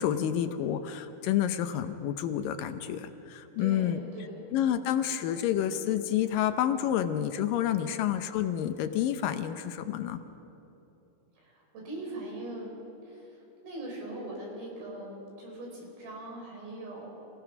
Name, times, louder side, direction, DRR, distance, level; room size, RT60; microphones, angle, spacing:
voice 1, 0.0-4.0 4.5-10.2, left 10 dB, 75° left, 9 dB, 2.2 m, -29 dB
voice 2, 3.6-4.5 7.8-8.0 11.4-12.7 13.0-17.3, right 1 dB, 70° right, -1 dB, 6.2 m, -41 dB
27.5 x 16.5 x 5.9 m, 2.9 s
omnidirectional pair, 4.4 m